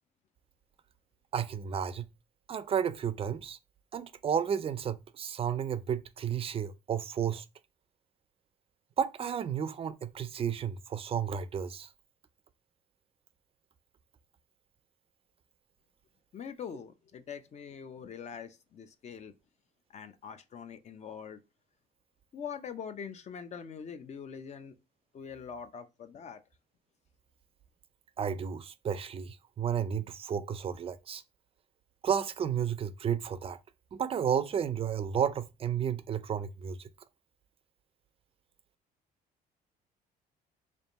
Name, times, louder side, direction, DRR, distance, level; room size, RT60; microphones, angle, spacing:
voice 1, 1.3-2.1 2.5-3.6 3.9-7.4 9.0-11.9 28.2-31.2 32.0-33.6 33.9-36.9, right 8 dB, 35° right, 0.4 m, -32 dB
voice 2, 16.3-19.3 19.9-21.4 22.3-24.7 25.1-26.4, left 7 dB, 40° left, 0.6 m, -43 dB
3.4 x 2.5 x 4.0 m
cardioid pair, 110°, 17 cm